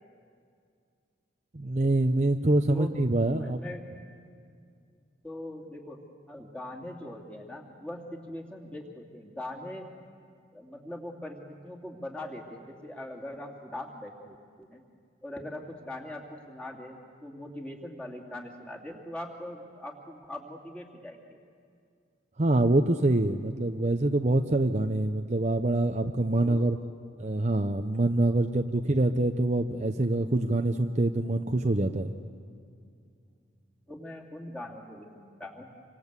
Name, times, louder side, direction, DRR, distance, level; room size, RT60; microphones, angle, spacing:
voice 1, 1.5-3.6 22.4-26.8 27.2-32.1, right 2 dB, 35° right, 6 dB, 0.7 m, -25 dB
voice 2, 2.7-3.0 3.3-3.9 5.2-6.0 6.3-9.9 10.5-14.8 15.2-21.4 26.4-26.6 33.9-35.7, left 1 dB, 5° left, -1 dB, 2.8 m, -41 dB
27.5 x 25.0 x 8.2 m, 2.3 s
head